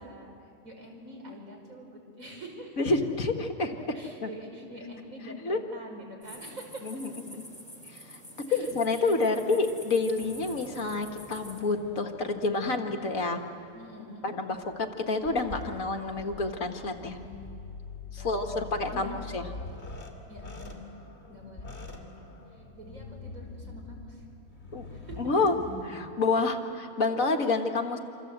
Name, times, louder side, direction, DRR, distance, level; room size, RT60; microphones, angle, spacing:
voice 1, 0.0-2.9 3.9-6.9 8.5-9.5 13.7-14.4 18.2-19.1 20.3-20.8 21.3-24.3 24.9-25.2, equal, 60° right, 1 dB, 5.5 m, -46 dB
voice 2, 2.8-3.7 4.2-4.3 5.4-5.6 6.8-7.4 7.9-8.2 8.5-13.4 14.2-17.2 18.1-19.5 24.7-24.9 25.2-25.6 25.8-28.0, left 3 dB, 60° left, 5 dB, 1.9 m, -28 dB
sound 1, 6.2-11.6, equal, 5° left, 4.2 m, -47 dB
sound 2, 10.2-13.9 14.5-26.1, left 3 dB, 45° left, 3.0 m, -44 dB
27.0 x 26.0 x 8.0 m, 2.9 s
omnidirectional pair, 1.6 m